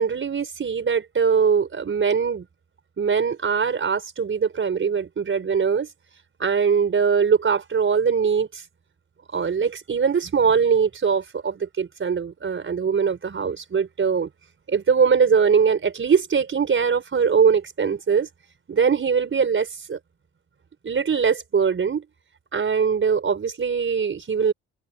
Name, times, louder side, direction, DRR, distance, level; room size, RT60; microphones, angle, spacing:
voice 1, 0.0-2.4 3.0-5.9 6.4-8.6 9.3-14.3 14.7-18.3 18.7-20.0 20.8-22.0 22.5-24.5, right 6 dB, 40° right, 5.0 m, -21 dB
cardioid pair, 90°, 30 cm